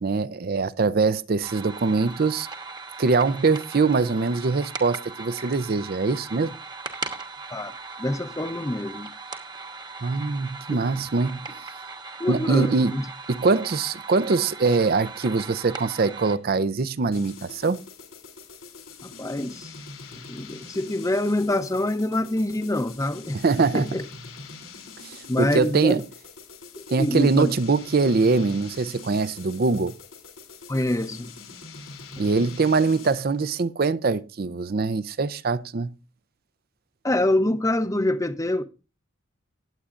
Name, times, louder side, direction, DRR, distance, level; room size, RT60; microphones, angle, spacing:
voice 1, 0.0-2.5 3.0-6.6 10.0-11.5 12.3-12.9 13.3-17.8 23.4-23.9 25.0-26.0 26.9-29.9 32.2-35.9, right 4 dB, 45° right, 0.5 m, -23 dB
sound 1, 1.4-16.4, right 4 dB, 20° right, 1.1 m, -39 dB
voice 2, 8.0-9.1 10.7-10.8 12.2-13.1 19.0-19.7 20.1-23.4 23.7-24.0 25.3-26.0 26.9-27.5 30.7-31.3 32.2-32.3 37.0-38.6, left 1 dB, 15° left, 0.7 m, -25 dB
sound 2, 17.1-33.3, left 4 dB, 80° left, 2.9 m, -44 dB
18.5 x 8.2 x 2.5 m
head